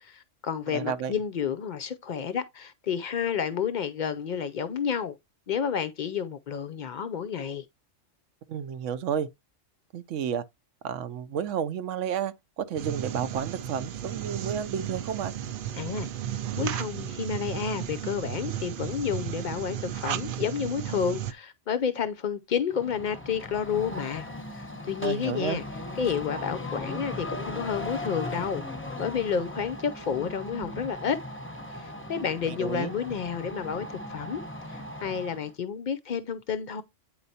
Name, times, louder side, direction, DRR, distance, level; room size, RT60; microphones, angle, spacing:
voice 1, 0.0-5.2 5.5-7.6 15.7-16.1 16.6-24.3 24.5-25.6 26.0-28.6 29.0-31.2 31.7-34.4 34.7-36.8, left 7 dB, 60° left, 0.5 m, -30 dB
voice 2, 0.7-1.1 8.5-9.3 9.9-10.4 10.8-15.3 25.0-25.6 32.5-32.9, right 8 dB, 80° right, 0.9 m, -31 dB
sound 1, 12.8-21.3, right 10 dB, 60° right, 0.6 m, -34 dB
sound 2, 22.7-35.5, left 1 dB, 10° left, 0.7 m, -38 dB
8.7 x 4.4 x 2.7 m
omnidirectional pair, 1.3 m